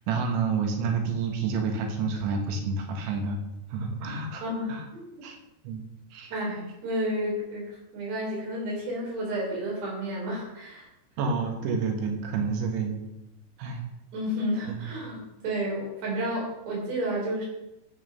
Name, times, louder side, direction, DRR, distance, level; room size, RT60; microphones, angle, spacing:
voice 1, 0.1-3.4 3.7-4.4 4.7-4.8 5.2-5.4 5.6-5.8 6.1-6.3 11.2-13.0 13.6-13.8 14.7-14.8, right 4 dB, 85° right, 3 dB, 3.8 m, -29 dB
voice 2, 4.4-5.3 6.3-7.6 7.9-10.9 14.1-17.5, equal, 70° right, -2 dB, 5.9 m, -31 dB
10.5 x 8.8 x 5.3 m, 0.89 s
omnidirectional pair, 5.1 m